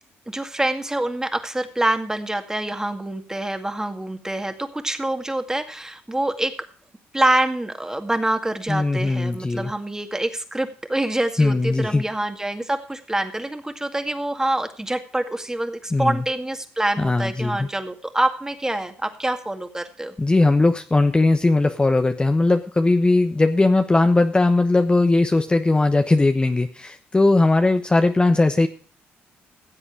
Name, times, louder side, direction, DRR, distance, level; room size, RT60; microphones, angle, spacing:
voice 1, 0.3-6.5 7.1-20.1, right 1 dB, 10° right, 7 dB, 2.1 m, -26 dB
voice 2, 8.7-9.7 11.4-12.0 15.9-16.2 17.0-17.7 20.2-28.7, left 2 dB, 20° left, 7 dB, 1.0 m, -19 dB
16.0 x 7.9 x 4.7 m, 0.42 s
supercardioid pair, 70°, 5 cm